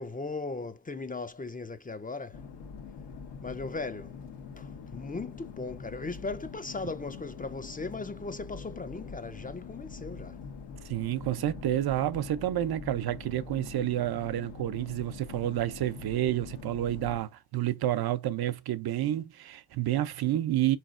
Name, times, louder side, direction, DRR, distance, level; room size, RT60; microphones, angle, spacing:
voice 1, 0.0-2.4 3.4-4.2 4.6-10.4, left 3 dB, 20° left, 0.6 m, -38 dB
sound 1, 2.3-17.2, left 5 dB, 70° left, 1.2 m, -44 dB
voice 2, 10.8-20.8, right 13 dB, 60° right, 0.7 m, -29 dB
3.9 x 3.2 x 2.5 m
supercardioid pair, 55°, 43 cm